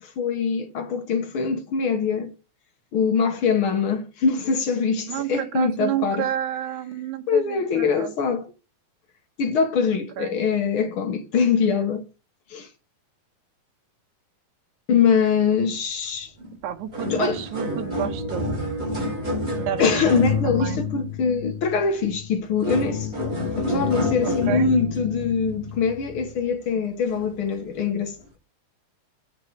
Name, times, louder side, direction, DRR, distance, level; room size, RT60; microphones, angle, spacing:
voice 1, 0.0-2.3 2.9-6.3 7.3-8.5 9.4-12.0 12.5-12.7 14.9-16.3 17.1-17.4 19.8-23.1 23.6-28.2, left 6 dB, 55° left, 1.6 m, -23 dB
voice 2, 5.1-8.1 10.2-10.4 16.6-18.5 19.6-20.8 24.2-24.7, right 11 dB, 80° right, 2.5 m, -30 dB
sound 1, 16.4-16.5 16.8-26.5 27.1-27.3 28.1-28.2, left 2 dB, 20° right, 5.7 m, -29 dB
9.4 x 7.4 x 4.7 m
omnidirectional pair, 3.5 m